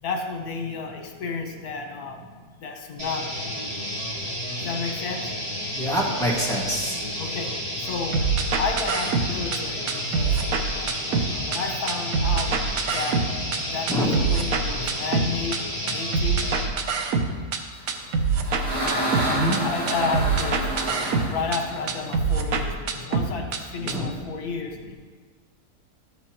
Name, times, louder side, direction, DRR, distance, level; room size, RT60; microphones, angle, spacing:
voice 1, 0.0-2.2 2.6-3.3 4.6-5.3 7.1-7.5 7.8-8.2 8.6-10.4 10.7-12.5 12.9-13.2 13.7-16.4 16.7-16.8 19.6-20.9 21.3-24.8, left 4 dB, 80° left, 3 dB, 1.5 m, -32 dB
sound 1, 3.0-16.7, equal, 25° right, 1.7 m, -31 dB
voice 2, 5.8-7.0 13.9-14.2 19.3-19.6 23.8-24.1, equal, ahead, -5 dB, 1.6 m, -25 dB
sound 2, 8.1-9.6 9.9-11.6 11.9-13.6 13.9-15.6 15.9-17.6 17.9-19.6 19.9-21.6 21.9-23.6 23.9-24.0, right 5 dB, 70° right, 1.2 m, -25 dB
sound 3, 18.0-22.6, equal, 90° right, 3.7 m, -29 dB
13.0 x 7.7 x 2.9 m, 1.5 s
omnidirectional pair, 1.6 m